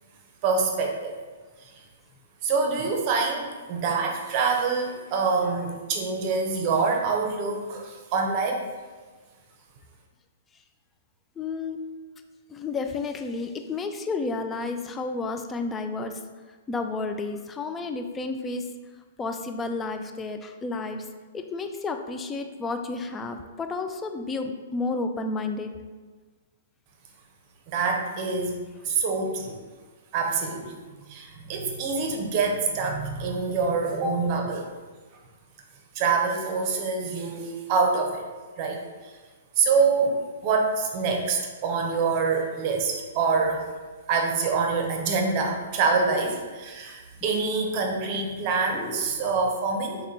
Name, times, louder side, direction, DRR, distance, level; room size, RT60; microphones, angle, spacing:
voice 1, 0.4-1.2 1.6-1.7 2.4-8.6 27.7-28.6 28.8-29.6 30.1-30.8 31.1-34.6 35.9-38.3 38.6-39.1 39.6-40.2 40.4-43.7 44.1-50.0, right 4 dB, 40° right, 2 dB, 0.6 m, -25 dB
voice 2, 11.4-11.9 12.5-16.2 16.7-18.7 19.2-21.1 21.3-25.7 48.7-49.2, left 3 dB, 15° left, 6 dB, 0.3 m, -31 dB
3.5 x 2.2 x 4.1 m, 1.4 s
figure-of-eight pair, 115°, 0 cm